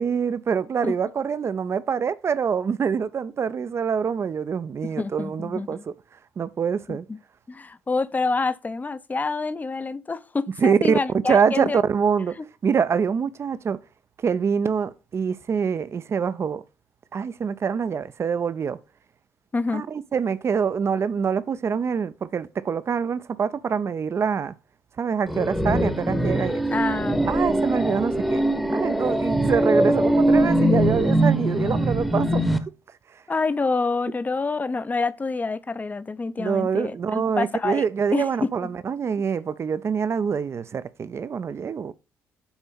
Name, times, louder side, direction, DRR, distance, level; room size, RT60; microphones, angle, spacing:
voice 1, 0.0-5.8 6.4-7.0 10.6-11.0 11.3-12.4 12.6-13.8 14.2-16.6 17.1-18.8 19.7-24.5 25.0-26.6 27.3-28.4 28.7-32.4 36.4-41.9, right 6 dB, 35° right, 0.6 m, -25 dB
voice 2, 4.8-5.9 6.9-7.2 7.5-11.8 12.4-12.5 19.5-19.8 26.7-27.7 33.3-37.9 38.1-38.7, left 3 dB, 20° left, 0.6 m, -27 dB
sound 1, 25.3-32.6, right 1 dB, ahead, 1.0 m, -22 dB
7.2 x 4.4 x 5.1 m
figure-of-eight pair, 45°, 8 cm